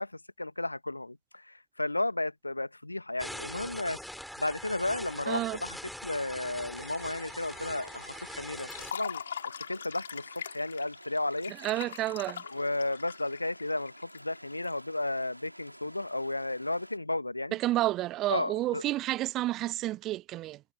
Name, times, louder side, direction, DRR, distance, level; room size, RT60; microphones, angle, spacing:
voice 1, 0.0-4.0 4.4-5.8 6.0-9.2 9.7-11.5 12.5-17.6 18.3-18.8, left 2 dB, 85° left, 1.7 m, -33 dB
sound 1, 3.2-8.9, left 1 dB, ahead, 5.2 m, -42 dB
voice 2, 5.3-5.6 11.6-12.4 17.5-20.6, right 15 dB, 35° right, 0.4 m, -30 dB
sound 2, 6.7-17.0, equal, 90° right, 3.5 m, -52 dB
Liquid, 8.6-14.7, left 8 dB, 65° left, 4.3 m, -42 dB
figure-of-eight pair, 90°, 0 cm